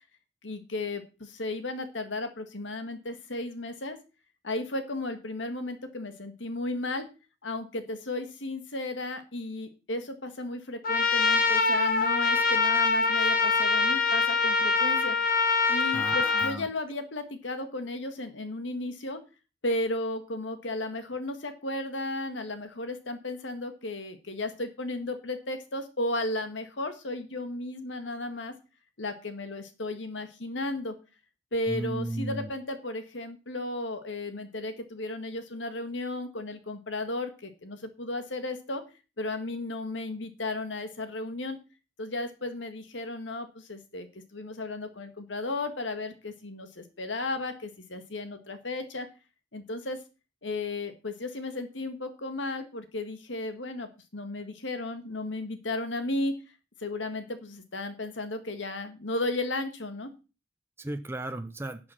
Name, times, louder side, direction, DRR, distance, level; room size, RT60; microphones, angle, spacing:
voice 1, 0.4-4.0 4.4-7.1 7.4-15.2 15.7-19.2 19.6-28.5 29.0-30.9 31.5-38.8 39.2-41.6 42.0-49.1 49.5-50.0 50.4-56.3 56.8-60.1, left 2 dB, 85° left, 8 dB, 1.8 m, -34 dB
Trumpet, 10.8-16.5, left 4 dB, 50° left, 1.4 m, -24 dB
voice 2, 15.9-16.7 31.7-32.5 60.8-61.8, right 2 dB, 15° right, 7 dB, 0.6 m, -34 dB
11.0 x 6.2 x 5.9 m, 0.32 s
head